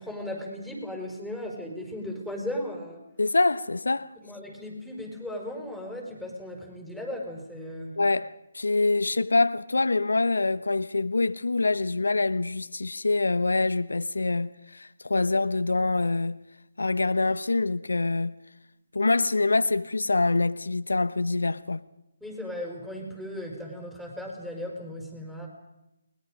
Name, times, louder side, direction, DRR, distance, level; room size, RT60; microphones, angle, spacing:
voice 1, 0.0-3.0 4.2-8.0 22.2-25.5, left 1 dB, ahead, 5.4 m, -36 dB
voice 2, 3.2-4.1 8.0-16.4 16.8-18.3 18.9-21.8, left 3 dB, 85° left, 1.0 m, -25 dB
29.5 x 21.5 x 5.3 m
figure-of-eight pair, 150°, 0 cm